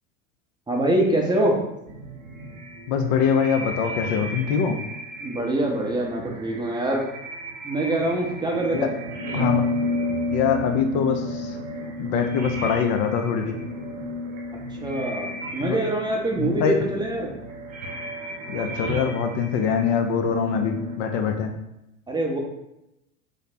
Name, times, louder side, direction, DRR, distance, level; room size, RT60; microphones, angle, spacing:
voice 1, 0.7-1.6 5.2-7.1 7.6-8.9 14.8-17.3 22.1-22.4, right 1 dB, 10° right, -1 dB, 0.6 m, -24 dB
sound 1, 1.9-21.0, left 1 dB, 80° right, 0.8 m, -32 dB
voice 2, 2.9-4.8 8.7-8.9 9.3-9.7 10.3-11.5 12.0-13.6 15.6-15.8 16.4-16.8 18.5-21.5, left 6 dB, 55° left, 6 dB, 0.6 m, -23 dB
3.3 x 2.1 x 4.1 m, 0.87 s
hypercardioid pair, 95°, 39 cm